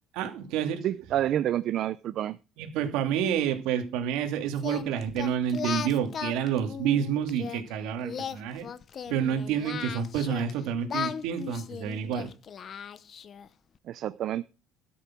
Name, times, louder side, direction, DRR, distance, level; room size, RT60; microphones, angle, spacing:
voice 1, 0.1-0.8 2.6-8.7 9.1-12.3, right 8 dB, 85° right, 2.5 m, -29 dB
voice 2, 0.8-2.4 13.9-14.4, right 12 dB, 50° right, 0.5 m, -28 dB
Singing, 4.6-7.6 8.0-10.5 10.9-13.5, left 7 dB, 35° left, 0.8 m, -37 dB
13.0 x 6.8 x 6.2 m
cardioid pair, 145°, 0 cm